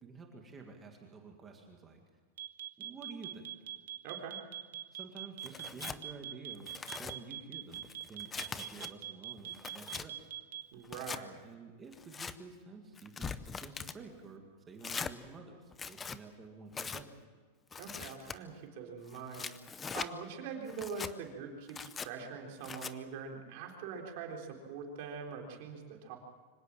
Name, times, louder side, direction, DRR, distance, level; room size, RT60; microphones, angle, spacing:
voice 1, 0.0-2.0 2.8-3.5 4.9-6.7 7.0-10.3 11.4-17.2, right 4 dB, 15° right, 2 dB, 2.0 m, -50 dB
sound 1, 2.4-10.7, right 12 dB, 90° right, 2.0 m, -42 dB
voice 2, 4.0-4.4 10.7-11.4 17.8-19.6 19.9-26.2, right 5 dB, 40° right, 2 dB, 3.7 m, -43 dB
Tearing, 5.4-6.0 6.5-7.1 7.7-8.9 9.4-10.1 10.8-11.2 11.9-12.3 13.0-14.0 14.8-15.1 15.7-16.2 16.7-17.0 17.7-18.4 19.1-20.1 20.7-21.1 21.7-22.1 22.6-22.9, left 5 dB, 10° left, 0.6 m, -42 dB
25.0 x 17.5 x 7.4 m, 1.5 s
supercardioid pair, 180°, 0 cm